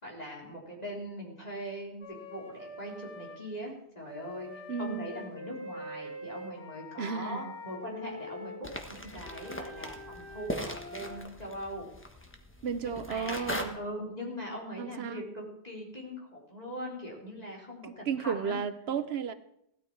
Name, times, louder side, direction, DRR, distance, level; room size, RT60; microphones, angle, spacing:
voice 1, 0.0-11.9 13.1-18.6, equal, 40° left, 3.9 m, -41 dB
Wind instrument woodwind instrument, 2.0-3.4 4.1-8.6 9.2-11.2, left 1 dB, 80° left, 3.3 m, -45 dB
voice 2, 4.7-5.1 7.0-7.5 12.6-13.8 14.8-15.2 17.9-19.3, right 6 dB, 70° right, 1.0 m, -33 dB
sound 1, 8.6-13.7, left 1 dB, 10° left, 1.4 m, -40 dB
16.5 x 13.0 x 4.7 m
omnidirectional pair, 1.1 m